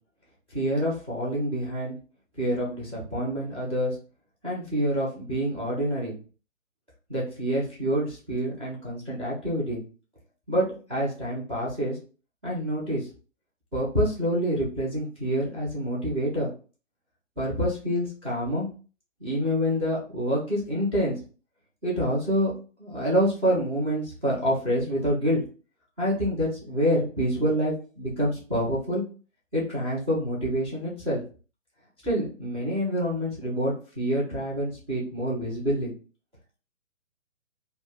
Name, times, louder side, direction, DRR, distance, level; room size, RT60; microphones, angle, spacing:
voice 1, 0.5-2.0 2.4-3.9 4.4-6.1 7.1-9.8 10.5-12.0 12.4-13.1 13.7-16.5 17.4-18.7 19.2-21.1 21.8-22.5 22.8-25.4 26.0-29.0 29.5-31.2 32.0-35.9, equal, 10° right, -11 dB, 0.5 m, -27 dB
2.4 x 2.1 x 3.6 m, 0.37 s
hypercardioid pair, 140°, 40 cm